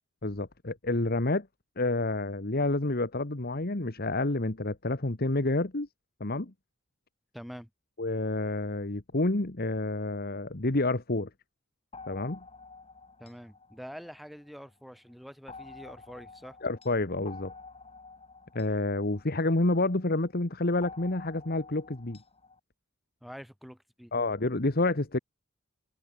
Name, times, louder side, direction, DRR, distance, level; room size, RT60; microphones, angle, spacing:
voice 1, 0.2-1.5 1.8-5.9 6.2-6.5 8.0-11.3 12.1-12.4 16.6-17.5 18.5-22.2 24.1-25.2, left 2 dB, 50° left, 1.6 m, -29 dB
voice 2, 7.3-7.7 13.2-16.6 23.2-24.1, equal, ahead, 2.8 m, -46 dB
sound 1, 11.9-14.7 15.5-20.0 20.8-22.6, left 4 dB, 30° left, 5.9 m, -50 dB
open air
head